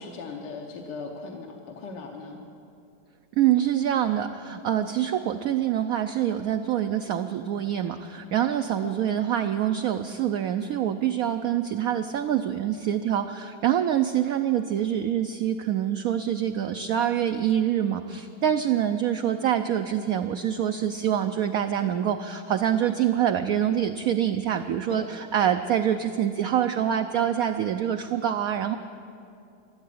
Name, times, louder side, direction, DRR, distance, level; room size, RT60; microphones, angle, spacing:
voice 1, 0.0-2.4 8.8-8.9 24.9-25.1, left 4 dB, 75° left, 2 dB, 1.6 m, -38 dB
voice 2, 3.4-28.8, right 10 dB, 75° right, 7 dB, 0.8 m, -25 dB
12.5 x 12.0 x 8.5 m, 2.5 s
omnidirectional pair, 2.0 m